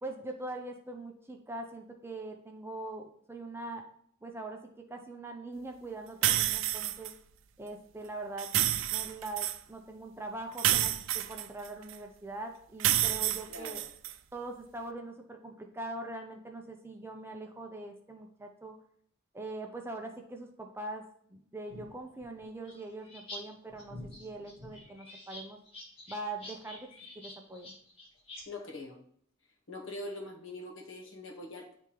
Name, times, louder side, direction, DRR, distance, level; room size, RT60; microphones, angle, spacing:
voice 1, 0.0-3.9 4.2-7.1 7.6-8.5 8.9-13.8 14.3-18.8 19.3-21.0 21.3-25.6 26.1-26.9 27.1-27.7, right 2 dB, 10° right, 3 dB, 0.5 m, -42 dB
sound 1, 6.2-7.1 8.4-9.6 10.6-11.9 12.8-14.1, right 13 dB, 70° right, 0.4 m, -29 dB
voice 2, 13.5-13.9 28.5-29.0 29.7-31.8, left 2 dB, 70° left, 3 dB, 1.1 m, -43 dB
sound 2, 21.7-23.4 23.7-28.4, left 1 dB, 30° left, 1.5 m, -47 dB
9.7 x 3.5 x 3.0 m, 0.64 s
head